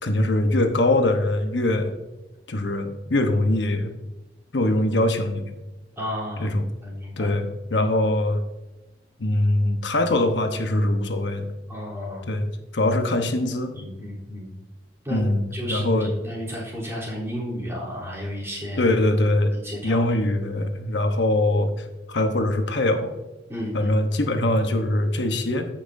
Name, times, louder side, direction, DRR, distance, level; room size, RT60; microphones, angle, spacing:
voice 1, 0.0-1.9 2.5-3.9 4.5-5.5 6.4-6.6 7.2-8.4 9.2-11.5 12.3-12.5 12.7-13.7 15.1-16.1 18.8-19.5 19.8-23.1 23.7-25.7, left 1 dB, 85° left, 6 dB, 1.0 m, -22 dB
voice 2, 6.0-6.5 6.8-7.3 7.7-7.8 11.7-12.2 13.7-14.5 15.0-15.2 15.5-18.9 19.5-20.0 23.5-23.9, equal, 15° right, -7 dB, 3.4 m, -32 dB
15.0 x 5.9 x 2.6 m, 1.1 s
head